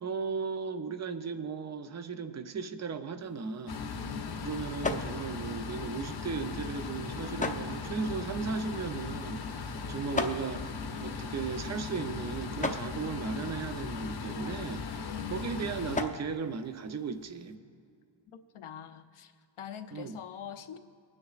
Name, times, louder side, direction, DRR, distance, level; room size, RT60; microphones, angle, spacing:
voice 1, 0.0-3.8 4.4-10.7 11.0-17.6 19.9-20.2, right 5 dB, 35° right, 9 dB, 0.6 m, -36 dB
sound 1, 3.2-17.5, left 3 dB, 15° left, 0.6 m, -41 dB
sound 2, 3.7-16.0, left 5 dB, 50° left, 0.8 m, -38 dB
voice 2, 4.0-4.5 15.1-15.6 18.5-19.3 19.6-20.8, left 9 dB, 90° left, 8 dB, 0.8 m, -44 dB
23.5 x 9.8 x 2.4 m, 2.4 s
wide cardioid pair, 160°, 48 cm